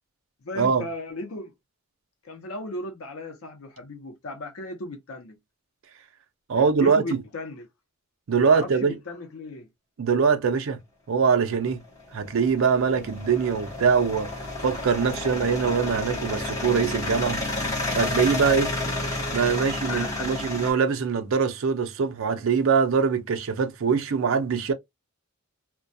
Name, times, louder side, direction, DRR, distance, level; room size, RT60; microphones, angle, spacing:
voice 1, 0.4-1.5 2.2-5.4 6.5-7.7 8.5-9.7 19.9-20.1, left 2 dB, 90° left, 0.7 m, -36 dB
voice 2, 6.5-7.2 8.3-9.0 10.0-10.8 11.1-11.8 12.1-14.3 14.6-17.4 17.9-18.7 19.3-24.7, right 5 dB, 65° right, 0.4 m, -23 dB
sound 1, 11.7-20.7, left 2 dB, 15° left, 1.0 m, -31 dB
2.2 x 2.2 x 2.5 m
head